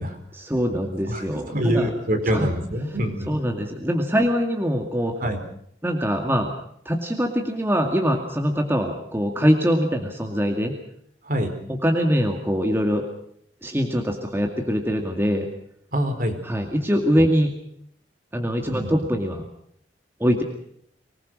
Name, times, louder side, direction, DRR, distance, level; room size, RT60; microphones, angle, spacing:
voice 1, 0.3-2.5 3.3-5.2 5.8-6.5 6.9-10.8 11.7-13.1 13.6-15.5 16.4-17.6 18.3-19.4 20.2-20.4, equal, 15° right, 3 dB, 2.2 m, -23 dB
voice 2, 1.1-3.4 5.2-5.4 11.3-11.5 15.9-16.3 18.7-18.9, equal, 50° right, 4 dB, 4.6 m, -25 dB
25.0 x 20.0 x 6.4 m, 0.68 s
head